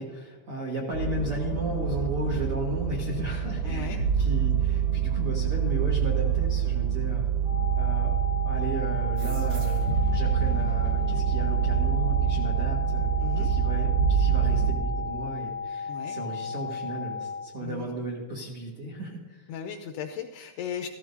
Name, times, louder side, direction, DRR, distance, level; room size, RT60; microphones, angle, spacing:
voice 1, 0.0-7.3 7.8-8.2 8.4-13.1 13.3-19.5, right 1 dB, 65° right, -3 dB, 1.3 m, -35 dB
sound 1, 0.9-14.7, right 8 dB, 45° right, 2.4 m, -26 dB
voice 2, 3.6-4.0 13.2-13.5 15.9-16.2 17.6-17.9 19.5-20.9, left 8 dB, 85° left, 4 dB, 2.4 m, -36 dB
sound 2, 7.4-17.4, left 5 dB, 60° left, 1.6 m, -35 dB
sound 3, 9.2-12.2, right 2 dB, 85° right, 3.9 m, -42 dB
15.0 x 15.0 x 2.7 m, 1.4 s
omnidirectional pair, 5.4 m